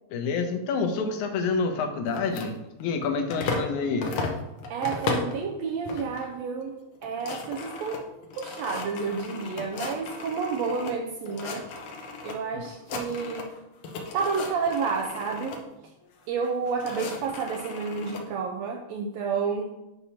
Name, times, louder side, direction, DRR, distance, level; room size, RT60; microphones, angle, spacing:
voice 1, 0.1-2.5 2.8-4.1, left 4 dB, 85° left, 3 dB, 2.2 m, -27 dB
sound 1, 2.1-3.7 4.0-5.4 5.9-6.3 6.6-6.7 7.0-10.9 11.3-12.3 12.6-13.6 13.8-15.6 16.4-18.2, left 3 dB, 70° left, 1.3 m, -35 dB
voice 2, 4.7-8.0 8.3-11.7 12.2-13.5 14.1-15.6 16.3-19.9, right 5 dB, 80° right, 1 dB, 1.7 m, -30 dB
8.2 x 2.9 x 5.5 m, 0.95 s
omnidirectional pair, 3.3 m